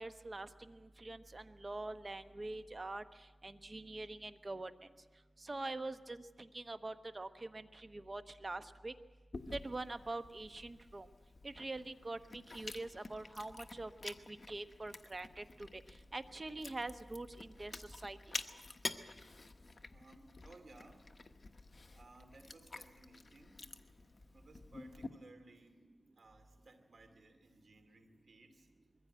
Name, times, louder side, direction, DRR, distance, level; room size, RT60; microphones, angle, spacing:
voice 1, 0.0-3.0 3.4-4.7 5.4-8.9 9.5-11.1 11.4-15.8 16.1-18.2, right 2 dB, 40° right, 10 dB, 1.0 m, -44 dB
Chewing mastication, 9.3-25.1, left 3 dB, 45° left, 1.1 m, -50 dB
voice 2, 19.9-21.1 21.9-23.7 24.3-28.7, right 2 dB, 75° right, 7 dB, 2.6 m, -60 dB
22.0 x 15.5 x 9.2 m, 1.3 s
wide cardioid pair, 65°, 0 cm